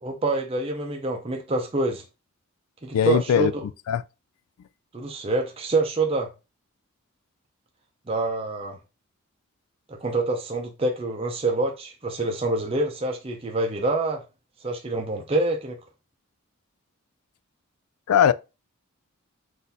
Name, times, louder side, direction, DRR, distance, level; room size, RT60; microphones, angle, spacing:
voice 1, 0.0-2.0 2.8-3.6 4.9-6.3 8.1-8.8 9.9-14.2 14.6-15.8, right 2 dB, 25° right, 0.5 m, -26 dB
voice 2, 2.9-3.5 3.9-4.0 18.1-18.3, left 8 dB, 80° left, 0.3 m, -19 dB
4.0 x 2.6 x 4.0 m
head